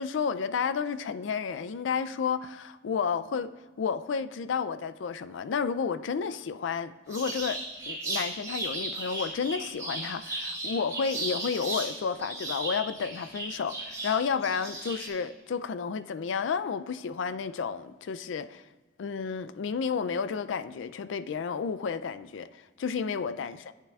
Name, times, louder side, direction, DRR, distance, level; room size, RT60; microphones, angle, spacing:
voice 1, 0.0-3.5 3.8-18.6 19.0-22.5 22.8-23.7, left 6 dB, 75° left, 0.4 m, -31 dB
sound 1, 7.1-11.9 12.2-15.1, right 2 dB, 20° right, 2.8 m, -35 dB
13.5 x 8.3 x 2.4 m
head